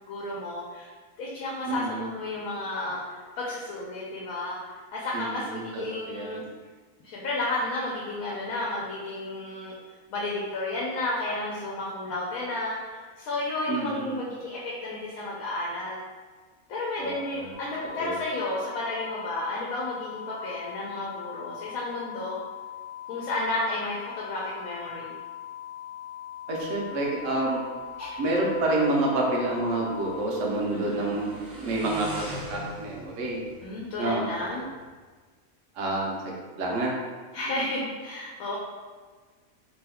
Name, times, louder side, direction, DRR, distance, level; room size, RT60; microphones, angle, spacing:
voice 1, 0.1-0.9 1.2-4.6 4.9-6.4 7.0-9.8 10.1-16.0 16.7-22.4 23.1-25.2 28.0-28.1 30.7-31.2 33.6-34.6 37.3-38.6, left 2 dB, 75° left, -5 dB, 1.0 m, -32 dB
voice 2, 1.7-2.1 5.1-6.5 13.7-14.1 17.0-17.5 18.0-18.2 26.5-27.6 28.2-33.4 34.0-34.3 35.7-37.0, right 2 dB, 65° right, -2 dB, 1.0 m, -28 dB
sound 1, 17.5-30.1, left 11 dB, 90° right, 1.1 m, -41 dB
Motorcycle, 26.7-34.9, right 1 dB, 20° right, 0.4 m, -45 dB
3.0 x 2.2 x 3.4 m, 1.4 s
omnidirectional pair, 1.5 m